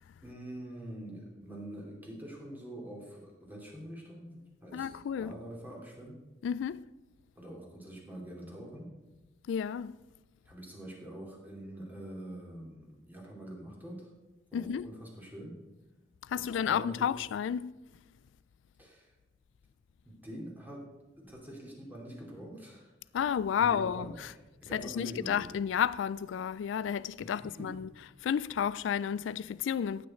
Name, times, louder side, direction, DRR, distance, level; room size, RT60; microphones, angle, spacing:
voice 1, 0.2-4.9 5.2-6.2 7.4-8.9 10.4-14.1 14.5-15.6 16.3-17.1 18.8-19.1 20.0-20.8 21.2-22.9 23.6-25.5 27.2-27.7, right 1 dB, 10° right, 3.0 m, -45 dB
voice 2, 4.7-5.3 6.4-6.8 9.5-10.0 14.5-14.9 16.2-17.7 23.1-24.3 24.7-27.9 28.2-30.1, left 8 dB, 70° left, 0.3 m, -31 dB
15.5 x 8.8 x 4.4 m
head